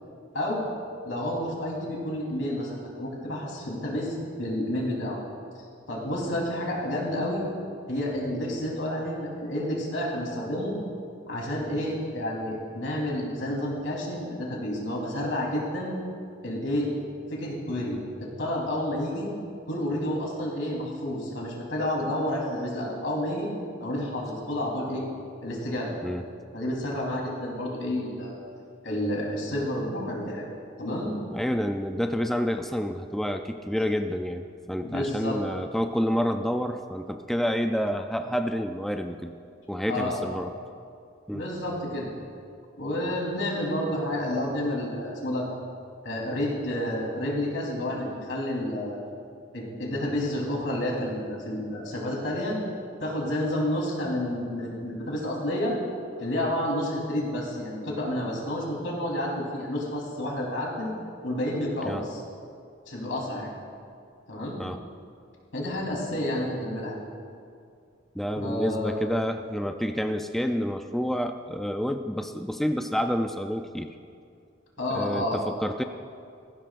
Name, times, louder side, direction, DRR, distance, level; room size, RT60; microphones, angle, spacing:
voice 1, 0.3-0.6 1.0-5.2 5.6-7.4 7.9-10.7 11.3-16.0 16.4-16.9 17.3-19.3 19.7-23.5 23.8-25.1 25.4-25.9 26.5-28.4 28.8-30.5 30.8-31.1 34.8-35.4 39.9-40.3 41.3-42.1 42.8-45.5 46.0-49.0 49.5-52.6 53.0-55.7 56.2-60.9 61.2-62.2 62.9-63.5 64.3-64.6 65.5-67.0 68.4-68.9 74.8-75.4, left 1 dB, 90° left, -3 dB, 3.5 m, -30 dB
voice 2, 31.3-39.3 39.7-40.5 41.3-41.4 61.8-62.0 64.6-64.8 68.2-73.9 74.9-75.8, equal, ahead, 6 dB, 0.3 m, -29 dB
18.5 x 15.5 x 2.5 m, 2.4 s
head